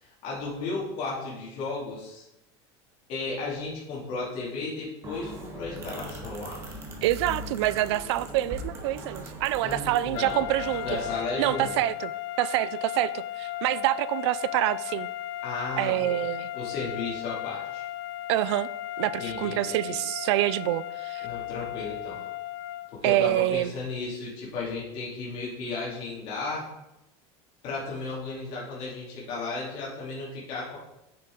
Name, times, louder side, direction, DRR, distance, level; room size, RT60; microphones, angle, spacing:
voice 1, 0.0-2.2 3.1-6.8 9.6-10.4 10.8-11.7 15.4-16.2 16.5-17.8 19.2-19.9 21.2-22.2 22.9-26.6 27.6-30.8, left 3 dB, 40° left, -6 dB, 3.0 m, -34 dB
sound 1, 5.0-11.1, right 1 dB, 20° right, 1.3 m, -40 dB
voice 2, 7.0-10.9 11.4-12.1 12.4-15.1 15.8-16.5 18.3-18.7 19.0-21.3 23.0-23.7, right 15 dB, 75° right, 17 dB, 0.4 m, -26 dB
sound 2, 10.1-23.0, left 15 dB, 60° left, 0.4 m, -36 dB
9.4 x 6.5 x 4.0 m, 0.92 s
supercardioid pair, 180°, 14 cm